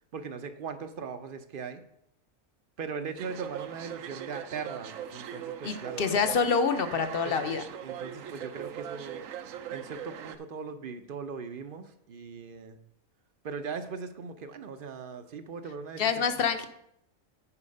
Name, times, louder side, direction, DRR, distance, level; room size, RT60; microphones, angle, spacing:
voice 1, 0.1-1.8 2.8-6.1 7.2-7.3 7.8-9.3 9.7-12.8 13.4-16.0, right 5 dB, 55° right, 9 dB, 0.7 m, -39 dB
sound 1, 3.2-10.4, right 9 dB, 75° right, 1.0 m, -40 dB
voice 2, 5.6-7.6 16.0-16.7, left 5 dB, 50° left, 8 dB, 0.9 m, -27 dB
9.8 x 4.7 x 5.3 m, 0.76 s
omnidirectional pair, 1.4 m